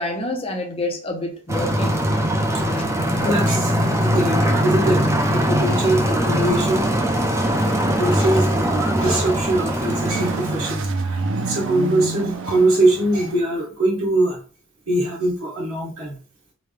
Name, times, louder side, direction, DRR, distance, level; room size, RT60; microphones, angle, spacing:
voice 1, 0.0-1.9 2.7-2.8 3.2-3.3, left 2 dB, 25° left, 0.7 m, -27 dB
sound 1, 1.5-10.8, equal, 15° right, 0.6 m, -21 dB
voice 2, 2.9-6.9 7.5-14.4 14.9-16.2, right 1 dB, 85° right, 1.9 m, -22 dB
sound 2, 7.5-13.4, right 3 dB, 60° right, 0.5 m, -30 dB
5.1 x 2.2 x 3.2 m
head